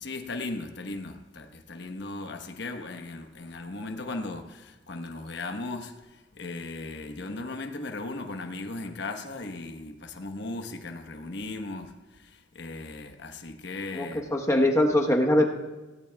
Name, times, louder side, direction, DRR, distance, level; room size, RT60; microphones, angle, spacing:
voice 1, 0.0-14.2, left 2 dB, 65° left, 1.1 m, -37 dB
voice 2, 13.9-15.5, left 1 dB, 15° left, 1.0 m, -22 dB
17.5 x 17.0 x 2.3 m
head